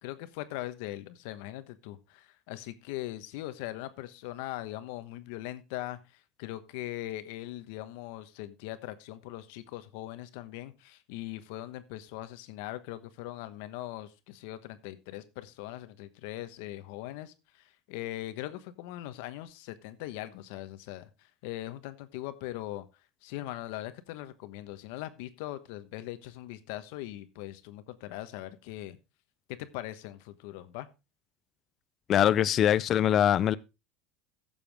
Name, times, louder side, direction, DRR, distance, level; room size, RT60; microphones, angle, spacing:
voice 1, 0.0-6.0 6.4-21.1 21.4-22.8 23.2-29.0 29.6-30.9, left 15 dB, 75° left, 1.1 m, -40 dB
voice 2, 32.1-33.6, left 10 dB, 40° left, 0.5 m, -23 dB
14.5 x 7.0 x 3.4 m
supercardioid pair, 125°, 0 cm